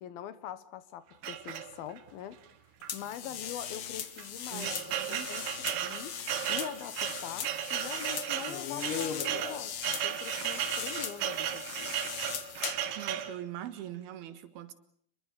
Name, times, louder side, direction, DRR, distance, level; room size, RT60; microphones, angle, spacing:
voice 1, 0.0-2.4 2.9-6.1 6.5-9.7 10.0-11.9, left 10 dB, 80° left, 3.2 m, -43 dB
sound 1, 1.2-2.1 2.8-3.0 3.2-3.3 4.0-13.4, right 10 dB, 70° right, 3.0 m, -35 dB
sound 2, 2.9-12.9, left 8 dB, 60° left, 1.4 m, -39 dB
voice 2, 4.5-5.3 13.0-14.7, right 12 dB, 85° right, 3.5 m, -42 dB
28.5 x 22.0 x 6.8 m
omnidirectional pair, 4.3 m